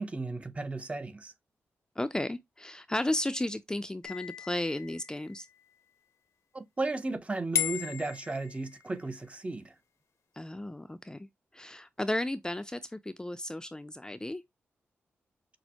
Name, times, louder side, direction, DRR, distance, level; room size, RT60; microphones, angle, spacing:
voice 1, 0.0-1.3 6.5-9.7, right 3 dB, 25° right, 0.6 m, -35 dB
voice 2, 2.0-5.4 10.4-11.3 11.5-14.4, left 1 dB, 15° left, 0.4 m, -34 dB
sound 1, 4.0-5.6 7.5-9.1, left 10 dB, 75° left, 0.8 m, -36 dB
6.2 x 2.1 x 2.8 m
cardioid pair, 65°, 5 cm